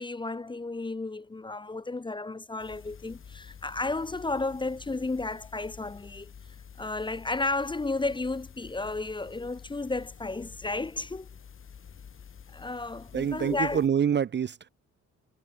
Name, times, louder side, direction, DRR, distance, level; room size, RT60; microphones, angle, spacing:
voice 1, 0.0-6.3 6.8-11.3 12.5-13.8, left 3 dB, 15° left, 0.7 m, -33 dB
sound 1, 2.6-13.9, left 7 dB, 45° left, 2.3 m, -49 dB
voice 2, 13.1-14.7, right 8 dB, 35° right, 0.6 m, -26 dB
cardioid pair, 90°, 30 cm